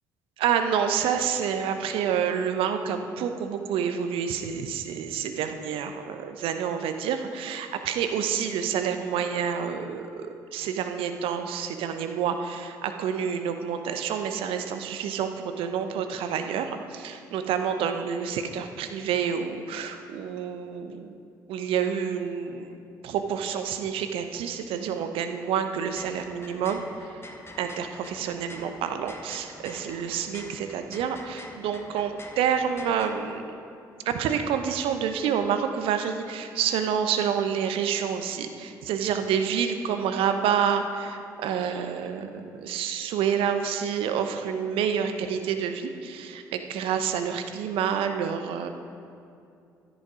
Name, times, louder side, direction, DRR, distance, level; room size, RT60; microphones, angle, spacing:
voice 1, 0.4-21.2 21.5-22.8 23.0-33.5 34.0-48.7, right 7 dB, 65° right, 7 dB, 0.8 m, -28 dB
sound 1, 25.7-33.1, left 2 dB, 25° left, 1.6 m, -46 dB
12.5 x 10.5 x 5.0 m, 2.5 s
figure-of-eight pair, 45°, 10 cm